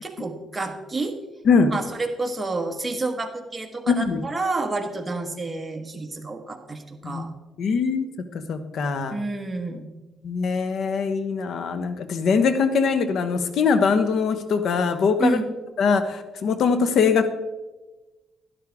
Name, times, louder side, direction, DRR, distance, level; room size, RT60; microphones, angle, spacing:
voice 1, 0.0-1.1 1.7-7.3 9.1-9.8 15.2-15.5, right 3 dB, 20° right, 5 dB, 1.5 m, -29 dB
voice 2, 3.9-4.2 7.0-7.2 7.6-8.1 8.5-9.2 10.2-15.4 15.8-17.3, left 5 dB, 65° left, 10 dB, 1.1 m, -22 dB
12.0 x 11.0 x 3.6 m, 1.1 s
cardioid pair, 90°, 0 cm